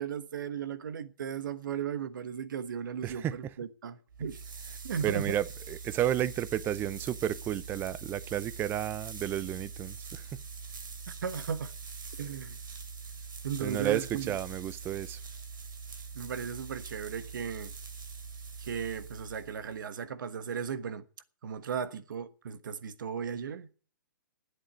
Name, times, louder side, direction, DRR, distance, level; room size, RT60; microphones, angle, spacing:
voice 1, 0.0-4.4 4.8-5.3 11.2-11.7 12.2-12.6 13.4-14.4 16.1-17.7 18.6-21.0 21.4-23.7, right 7 dB, 70° right, 1.3 m, -36 dB
voice 2, 3.0-3.3 5.0-10.3 13.6-15.2, right 12 dB, 20° right, 0.6 m, -32 dB
sound 1, 4.1-19.9, right 5 dB, 90° right, 2.9 m, -44 dB
10.0 x 8.2 x 9.3 m
hypercardioid pair, 140°, 11 cm